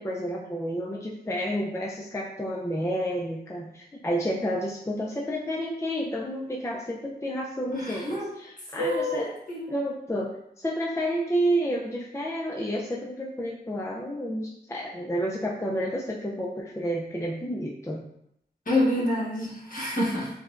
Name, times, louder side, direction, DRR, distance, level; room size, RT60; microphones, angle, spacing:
voice 1, 0.0-9.3 9.7-10.3 10.6-18.0, equal, 15° left, -2 dB, 0.5 m, -30 dB
voice 2, 7.7-8.3 8.8-9.7 18.7-20.3, left 1 dB, 50° left, -5 dB, 1.4 m, -27 dB
4.8 x 2.2 x 2.5 m, 0.78 s
cardioid pair, 45°, 18 cm